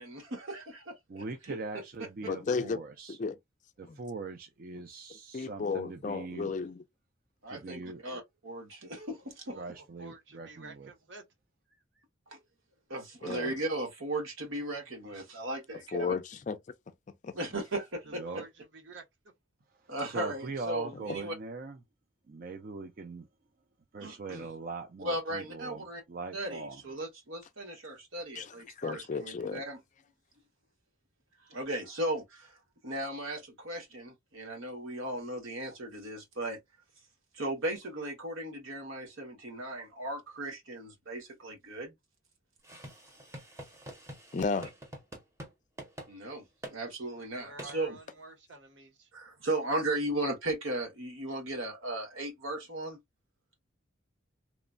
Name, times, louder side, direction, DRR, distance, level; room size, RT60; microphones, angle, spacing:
voice 1, 0.0-1.6 7.4-9.6 12.3-12.4 12.9-16.1 17.3-18.2 19.9-21.4 24.0-24.5 25.0-26.0 26.3-29.8 31.5-32.6 32.8-36.6 37.3-41.9 46.1-48.0 49.1-53.0, right 1 dB, 85° right, 1.2 m, -36 dB
voice 2, 1.1-3.2 3.8-6.5 7.5-8.0 9.6-10.9 18.1-18.4 20.0-21.8 22.3-23.3 23.9-26.8, right 3 dB, 45° right, 0.4 m, -41 dB
voice 3, 2.2-2.8 3.2-3.4 3.8-4.0 5.3-6.8 13.2-13.5 15.9-16.6 17.2-17.3 28.4-29.6 44.3-44.7, left 4 dB, 40° left, 0.3 m, -33 dB
voice 4, 9.5-11.2 18.1-19.0 47.2-49.1, right 3 dB, 65° right, 0.8 m, -50 dB
sound 1, 42.6-45.5 45.8-46.1 46.6-46.8 47.6-47.8, right 1 dB, 15° right, 0.7 m, -45 dB
3.0 x 2.1 x 2.4 m
head